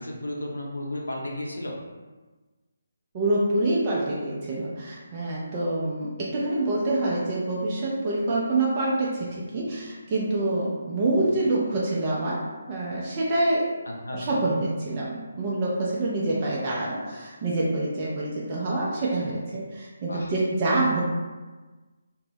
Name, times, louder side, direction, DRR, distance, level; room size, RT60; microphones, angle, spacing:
voice 1, 0.0-1.8 11.2-11.3 13.9-14.4 20.1-20.3, left 1 dB, 70° left, -1 dB, 0.6 m, -34 dB
voice 2, 3.1-13.7 14.1-21.0, right 2 dB, 25° right, -5 dB, 0.4 m, -26 dB
2.5 x 2.0 x 2.9 m, 1.3 s
figure-of-eight pair, 145°, 0 cm